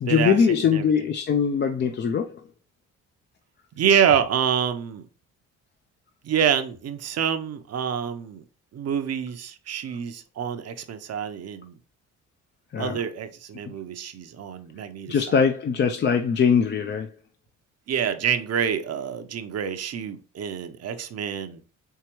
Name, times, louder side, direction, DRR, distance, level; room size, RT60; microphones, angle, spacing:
voice 1, 0.0-2.4 12.7-13.0 15.1-17.1, left 6 dB, 35° left, 0.4 m, -22 dB
voice 2, 3.8-5.1 6.2-8.4 8.7-11.8 12.8-15.3 17.9-21.6, right 8 dB, 55° right, 0.7 m, -26 dB
4.7 x 3.3 x 3.0 m
cardioid pair, 90°, 30 cm